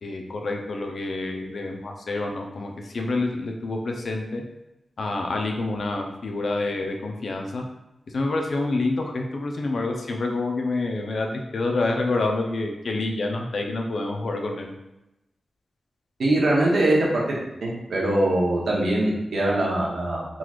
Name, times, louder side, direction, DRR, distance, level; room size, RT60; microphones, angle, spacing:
voice 1, 0.0-4.4 5.0-7.6 8.1-11.3 11.5-14.7, left 2 dB, 70° left, 2 dB, 0.5 m, -27 dB
voice 2, 16.2-17.4 17.6-20.3, right 1 dB, 80° right, -3 dB, 0.9 m, -22 dB
3.8 x 3.0 x 2.4 m, 0.93 s
wide cardioid pair, 75°, 0 cm